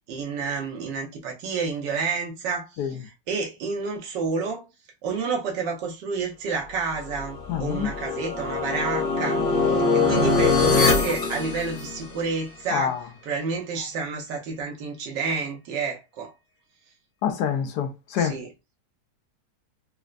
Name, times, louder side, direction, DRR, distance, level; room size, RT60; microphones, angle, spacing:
voice 1, 0.1-4.7 5.0-16.3 18.2-18.5, right 4 dB, 75° right, 1.5 m, -30 dB
sound 1, 7.1-12.3, left 4 dB, 50° left, 0.6 m, -23 dB
voice 2, 7.5-7.9 12.7-13.0 17.2-18.4, left 8 dB, 75° left, 1.1 m, -26 dB
4.2 x 2.1 x 2.4 m
omnidirectional pair, 1.9 m